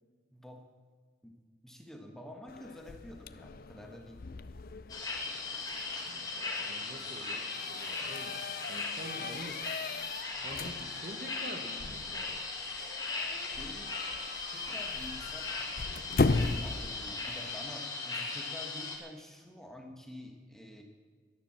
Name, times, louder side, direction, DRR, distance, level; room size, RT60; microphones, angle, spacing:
voice 1, 0.3-0.6 1.2-1.3 1.6-4.2 13.6-14.0 14.5-15.5 16.6-20.8, left 1 dB, ahead, 3 dB, 1.2 m, -48 dB
sound 1, 2.5-17.5, left 3 dB, 50° left, 0.5 m, -38 dB
sound 2, 4.9-19.0, left 3 dB, 20° left, 1.7 m, -38 dB
voice 2, 6.0-9.7 10.4-12.4, right 1 dB, 45° right, 6 dB, 1.2 m, -47 dB
12.0 x 11.5 x 7.4 m, 1.5 s
head